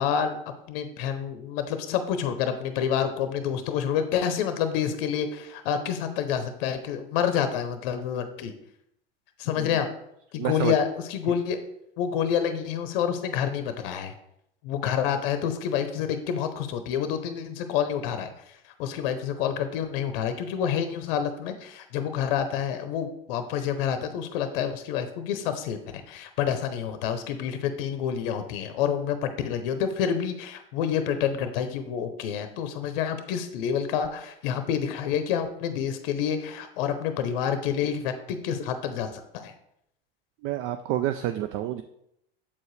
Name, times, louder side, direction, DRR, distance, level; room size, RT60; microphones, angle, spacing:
voice 1, 0.0-8.5 9.4-9.9 10.3-11.6 12.0-14.1 14.6-25.8 26.1-39.5, left 8 dB, 70° left, 9 dB, 0.7 m, -28 dB
voice 2, 10.4-10.7 40.4-41.8, right 12 dB, 50° right, 9 dB, 0.4 m, -29 dB
7.2 x 4.6 x 3.2 m, 0.77 s
hypercardioid pair, 90°, 29 cm